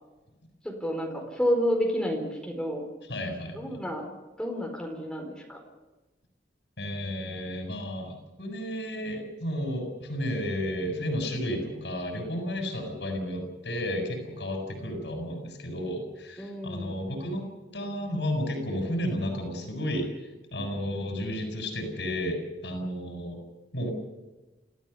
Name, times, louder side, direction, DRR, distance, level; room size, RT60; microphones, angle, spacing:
voice 1, 0.6-2.8 3.5-5.6 16.4-16.9, equal, 5° left, 1 dB, 4.5 m, -30 dB
voice 2, 3.1-3.8 6.8-8.1 8.4-17.4 17.7-20.1 20.5-23.4 23.7-23.9, equal, 85° left, 3 dB, 7.2 m, -32 dB
28.5 x 16.5 x 7.1 m, 1.1 s
head